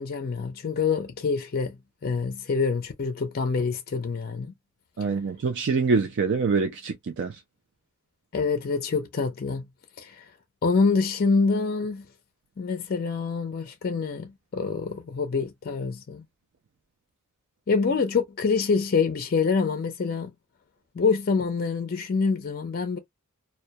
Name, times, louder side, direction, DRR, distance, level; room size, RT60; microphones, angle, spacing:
voice 1, 0.0-1.8 2.0-4.5 8.3-9.6 10.0-10.2 10.6-12.1 12.6-16.2 17.7-20.3 21.0-23.0, left 4 dB, 45° left, 0.4 m, -26 dB
voice 2, 5.0-7.3, right 4 dB, 55° right, 0.4 m, -25 dB
2.2 x 2.1 x 2.7 m
head